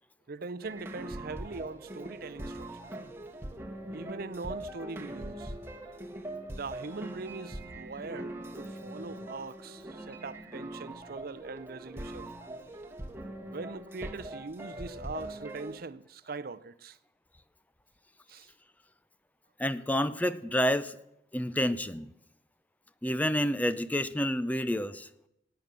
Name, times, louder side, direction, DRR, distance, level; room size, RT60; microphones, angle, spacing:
voice 1, 0.3-2.9 3.9-5.5 6.5-12.3 13.5-17.0 18.3-18.5, right 3 dB, 55° right, 0.6 m, -41 dB
sound 1, 0.6-15.8, right 1 dB, 15° right, 1.4 m, -42 dB
voice 2, 19.6-21.0 21.3-22.1 23.0-25.1, equal, 10° left, 0.5 m, -29 dB
18.0 x 9.1 x 6.8 m
head